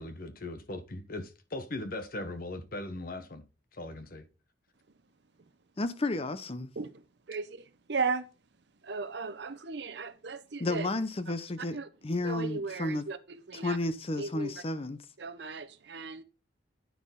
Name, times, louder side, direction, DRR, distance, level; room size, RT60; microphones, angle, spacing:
voice 1, 0.0-3.4 3.7-4.2, left 2 dB, 50° left, 1.1 m, -39 dB
voice 2, 5.8-6.7 10.6-11.8 12.0-13.0 13.5-15.0, left 2 dB, 30° left, 0.7 m, -32 dB
voice 3, 6.8-7.6 7.9-8.3 8.8-10.9 11.7-11.9 12.2-13.8 14.2-14.6 15.2-16.2, right 4 dB, 60° right, 0.8 m, -36 dB
9.4 x 6.1 x 3.7 m
head